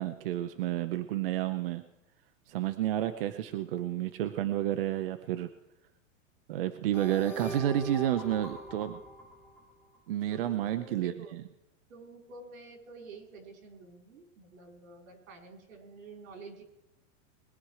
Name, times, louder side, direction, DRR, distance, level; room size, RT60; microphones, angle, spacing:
voice 1, 0.0-1.8 2.5-5.5 6.5-9.0 10.1-11.4, right 12 dB, 45° right, 9 dB, 0.7 m, -30 dB
Corporate company introduction video, 6.9-10.0, equal, 5° left, 1.2 m, -42 dB
voice 2, 10.3-11.3 11.9-16.7, right 3 dB, 85° right, 3 dB, 4.6 m, -50 dB
21.0 x 10.5 x 4.8 m, 0.89 s
supercardioid pair, 180°, 39 cm